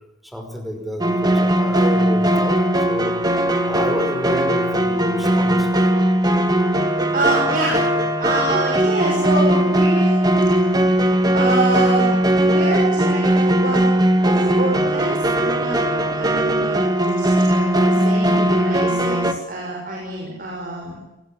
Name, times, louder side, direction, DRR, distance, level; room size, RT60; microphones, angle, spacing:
voice 1, 0.2-2.6 2.9-3.1 3.6-5.7, equal, ahead, 5 dB, 5.2 m, -29 dB
sound 1, 1.0-19.3, right 1 dB, 20° right, 2.1 m, -18 dB
voice 2, 6.7-7.8 8.2-10.2 10.4-13.9 14.2-15.8 16.2-21.0, right 2 dB, 50° right, -1 dB, 6.5 m, -26 dB
27.0 x 20.5 x 8.6 m, 0.98 s
head